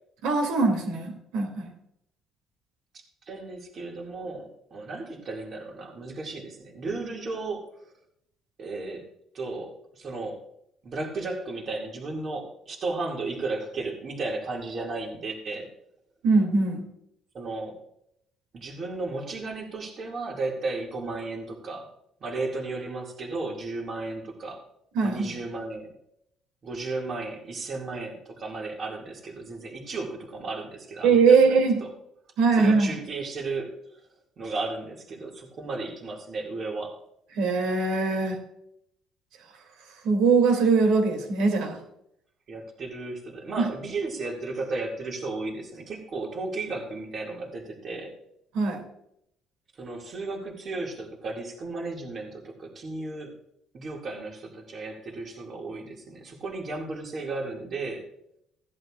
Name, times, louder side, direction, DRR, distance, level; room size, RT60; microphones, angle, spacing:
voice 1, 0.2-1.7 16.2-16.9 24.9-25.3 31.0-31.8 32.4-32.9 37.4-38.4 40.0-41.8 43.6-43.7 48.5-48.8, right 4 dB, 85° right, 4 dB, 2.5 m, -21 dB
voice 2, 3.3-7.7 8.6-9.0 9.3-10.4 10.8-15.7 17.3-17.8 18.5-21.9 22.2-24.6 25.0-25.9 26.6-31.6 32.5-34.0 34.4-37.0 42.5-48.1 49.8-53.3 53.7-58.1, right 3 dB, 40° right, 0 dB, 2.2 m, -34 dB
16.5 x 10.5 x 2.4 m, 0.75 s
cardioid pair, 140°, 0 cm